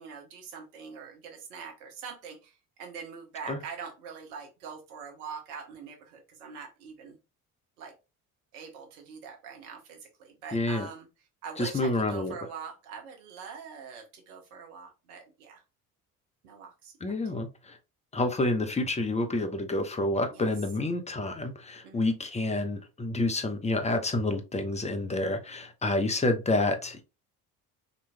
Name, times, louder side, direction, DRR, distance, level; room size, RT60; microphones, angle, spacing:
voice 1, 0.0-7.2 7.8-7.9 8.5-11.1 11.4-15.6 16.4-16.9 20.3-20.5 21.8-22.0, right 6 dB, 75° right, 2 dB, 1.2 m, -43 dB
voice 2, 10.5-10.9 11.6-12.3 17.0-17.8 18.1-27.0, left 2 dB, 15° left, 7 dB, 0.9 m, -28 dB
5.3 x 3.0 x 2.2 m, 0.28 s
figure-of-eight pair, 50°, 45 cm